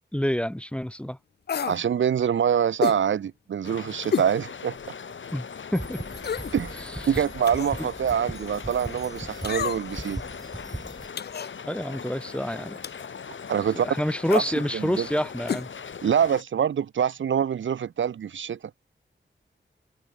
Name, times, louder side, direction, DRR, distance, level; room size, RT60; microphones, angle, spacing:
voice 1, 0.1-1.2 5.3-5.5 5.7-6.0 6.8-7.2 7.8-7.9 11.7-12.8 13.8-15.7, equal, 5° left, 0.7 m, -28 dB
sound 1, 1.5-1.8 2.8-3.0 4.1-4.3 4.8-4.9 6.2-6.6 7.5-7.8 9.4-10.0 11.2-11.5 12.8-13.1 14.3-14.5 15.5-15.7 15.9-16.0, left 7 dB, 55° left, 0.5 m, -29 dB
voice 2, 1.6-4.8 6.5-6.8 7.1-10.2 13.5-13.9 14.7-15.1 16.0-18.6, right 8 dB, 75° right, 0.5 m, -25 dB
sound 2, 3.6-16.4, left 6 dB, 70° left, 1.2 m, -40 dB
sound 3, 5.7-11.1, right 1 dB, 20° right, 3.8 m, -38 dB
wide cardioid pair, 65°, 20 cm